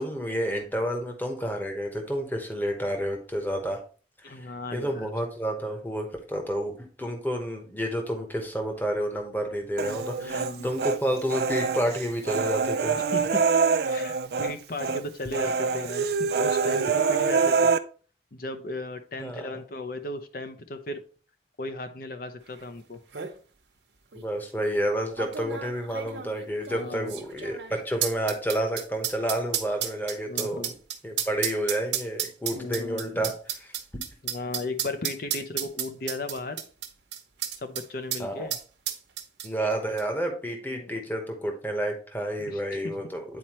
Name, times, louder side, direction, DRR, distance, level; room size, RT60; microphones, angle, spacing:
voice 1, 0.0-3.8 4.2-4.4 4.7-13.0 19.2-19.5 24.1-30.7 31.0-33.7 38.2-38.5 39.4-43.2, right 1 dB, 10° left, 2 dB, 1.0 m, -30 dB
voice 2, 4.2-5.1 10.2-10.7 13.0-13.4 13.8-17.7 18.3-21.0 21.6-23.0 26.7-27.1 30.3-30.7 32.5-33.3 34.2-36.6 37.5-38.6 40.7-41.0 42.4-42.9, left 2 dB, 55° left, 8 dB, 0.6 m, -36 dB
Human voice, 9.8-11.0 11.3-14.5 14.8-15.0 15.3-17.8, right 5 dB, 60° right, 0.4 m, -25 dB
sound 1, 22.6-22.7 22.9-23.3 24.1-24.2 25.2-37.8 38.1-38.2 38.5-39.7 40.0-40.1, right 10 dB, 80° right, 0.9 m, -32 dB
9.2 x 4.3 x 3.0 m, 0.40 s
head